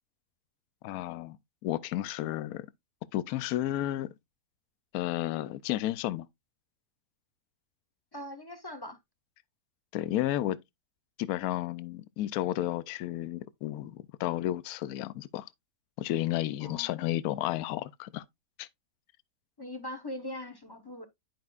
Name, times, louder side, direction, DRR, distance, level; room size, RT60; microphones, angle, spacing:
voice 1, 0.8-1.4 1.6-2.7 3.1-4.1 4.9-6.3 9.9-10.6 11.2-15.5 16.0-18.2 18.6-18.7, left 14 dB, 70° left, 1.0 m, -32 dB
voice 2, 8.1-9.0 16.6-16.9 19.6-21.1, left 1 dB, 20° left, 0.7 m, -41 dB
10.5 x 5.6 x 2.4 m
omnidirectional pair, 1.7 m